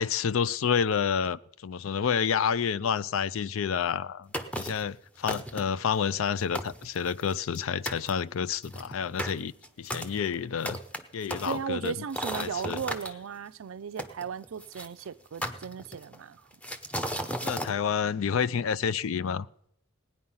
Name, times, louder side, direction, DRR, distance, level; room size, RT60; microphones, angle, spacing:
voice 1, 0.0-4.3 4.6-10.8 11.1-11.9 12.3-12.8 17.4-19.5, left 7 dB, 70° left, 0.4 m, -29 dB
sound 1, 4.3-4.9 5.3-5.8 6.3-6.4 6.6-7.6 7.9-8.1 8.6-13.1 14.0-14.9 15.4-16.2 16.6-17.7, equal, 5° left, 0.8 m, -35 dB
voice 2, 11.5-16.5, right 7 dB, 70° right, 0.4 m, -36 dB
17.5 x 9.6 x 5.6 m
head